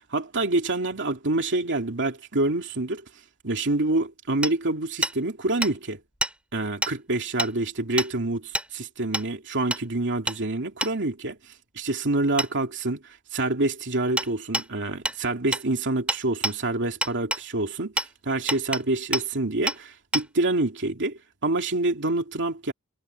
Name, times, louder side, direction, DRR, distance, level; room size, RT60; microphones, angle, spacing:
voice 1, 0.1-3.0 3.4-6.0 6.5-11.4 11.8-13.0 13.3-17.9 18.2-22.7, right 2 dB, 55° right, 2.6 m, -27 dB
Hammer, 4.4-4.5 5.0-5.2 5.6-5.7 6.2-6.3 6.8-6.9 7.4-7.5 8.0-8.1 8.5-8.7 9.1-9.3 9.7-9.8 10.3-10.4 10.8-10.9 12.4-12.5 14.2-14.3 14.5-14.7 15.1-15.2 15.5-15.7 16.1-16.6 17.0-17.4 18.0-18.1 18.5-18.8 19.1-19.3 19.7-19.8 20.1-20.3, right 1 dB, 5° right, 4.0 m, -27 dB
head